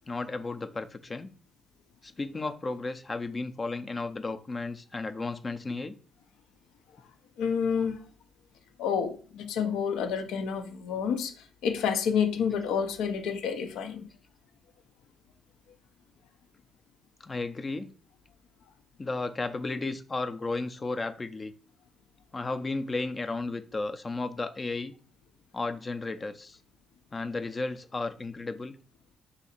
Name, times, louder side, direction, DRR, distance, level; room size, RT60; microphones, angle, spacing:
voice 1, 0.1-1.3 2.0-6.0 17.2-17.9 19.0-21.5 22.3-24.9 25.5-26.6 27.1-28.8, left 3 dB, 30° left, 0.4 m, -34 dB
voice 2, 7.4-8.0 8.8-14.1, left 7 dB, 85° left, 0.5 m, -29 dB
2.8 x 2.6 x 4.2 m
cardioid pair, 90°, 0 cm